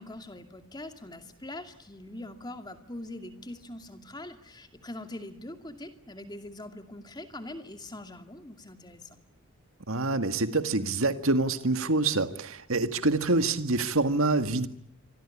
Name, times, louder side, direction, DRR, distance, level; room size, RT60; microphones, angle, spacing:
voice 1, 0.0-9.2, left 1 dB, 20° left, 7 dB, 2.4 m, -43 dB
voice 2, 9.9-14.7, right 2 dB, 65° right, 10 dB, 1.9 m, -26 dB
27.0 x 24.5 x 8.6 m, 0.66 s
head